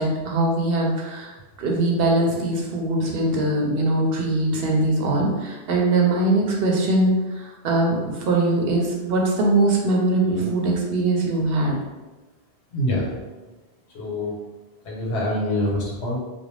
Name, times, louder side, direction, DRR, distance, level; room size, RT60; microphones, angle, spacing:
voice 1, 0.0-1.3 1.6-7.1 7.4-11.8, right 2 dB, 65° right, -1 dB, 0.8 m, -21 dB
voice 2, 12.7-13.1 13.9-14.3 14.8-16.2, left 1 dB, 80° left, -3 dB, 1.1 m, -25 dB
2.5 x 2.1 x 3.1 m, 1.2 s
omnidirectional pair, 1.1 m